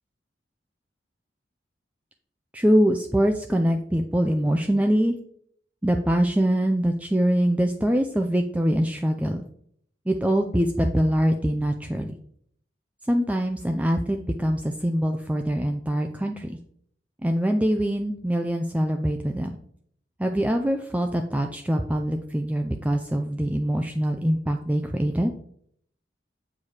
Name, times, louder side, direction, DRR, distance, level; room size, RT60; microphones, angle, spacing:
voice 1, 2.5-5.2 5.8-9.4 10.1-12.1 13.1-16.6 17.2-19.6 20.2-25.3, equal, 10° right, 4 dB, 0.4 m, -23 dB
8.2 x 4.8 x 4.2 m, 0.65 s
head